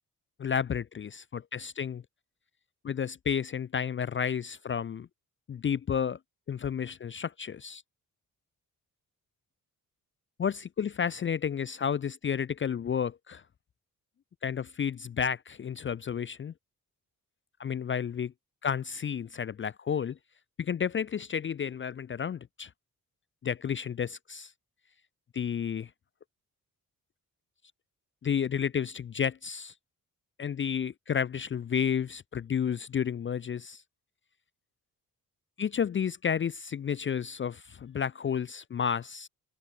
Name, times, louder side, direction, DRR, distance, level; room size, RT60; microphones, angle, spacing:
voice 1, 0.4-2.0 2.8-5.1 5.5-6.2 6.5-7.8 10.4-13.4 14.4-16.5 17.6-18.3 18.6-20.2 20.6-22.7 23.4-24.5 25.3-25.9 28.2-29.7 30.4-33.8 35.6-39.3, left 7 dB, 35° left, 0.5 m, -31 dB
open air
wide cardioid pair, 165°, 34 cm